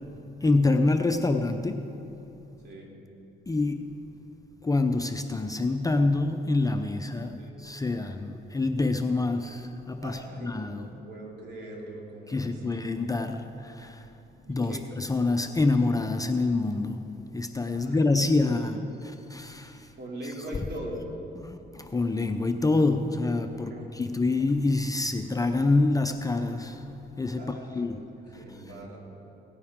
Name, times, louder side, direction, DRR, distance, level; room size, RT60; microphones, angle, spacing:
voice 1, 0.4-1.8 3.5-3.9 4.6-10.8 12.3-14.0 14.5-17.0 17.3-19.9 21.4-26.8 27.2-28.0 28.3-28.4, left 3 dB, 20° left, 6 dB, 0.6 m, -26 dB
voice 2, 10.0-12.9 14.4-14.8 17.7-18.8 20.0-21.0 23.5-23.9 27.4-27.8 28.3-29.0, right 1 dB, 60° right, -2 dB, 2.6 m, -41 dB
17.5 x 9.6 x 3.6 m, 2.9 s
cardioid pair, 90°, 20 cm